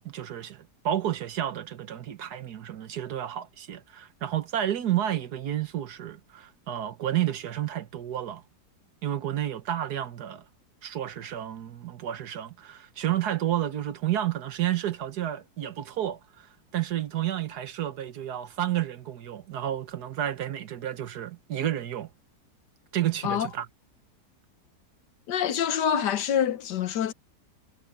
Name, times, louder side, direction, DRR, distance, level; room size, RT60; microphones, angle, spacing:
voice 1, 0.0-8.4 9.0-10.4 10.8-22.1 22.9-23.7, right 11 dB, 70° right, 1.6 m, -31 dB
voice 2, 25.3-27.1, left 9 dB, 80° left, 1.6 m, -26 dB
omnidirectional pair, 1.8 m